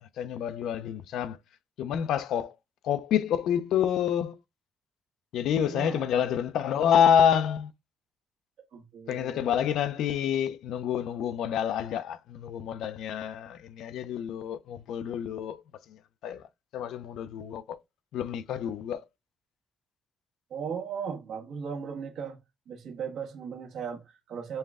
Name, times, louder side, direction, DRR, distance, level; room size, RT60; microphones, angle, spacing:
voice 1, 0.2-1.4 1.8-2.5 2.8-4.4 5.3-7.7 9.1-15.6 16.2-16.4 16.7-17.8 18.1-19.0, left 9 dB, 80° left, 0.4 m, -27 dB
voice 2, 5.6-6.3 8.7-9.5 20.5-22.4 22.7-24.6, right 6 dB, 75° right, 1.2 m, -37 dB
5.5 x 2.2 x 3.5 m
cardioid pair, 90°, 0 cm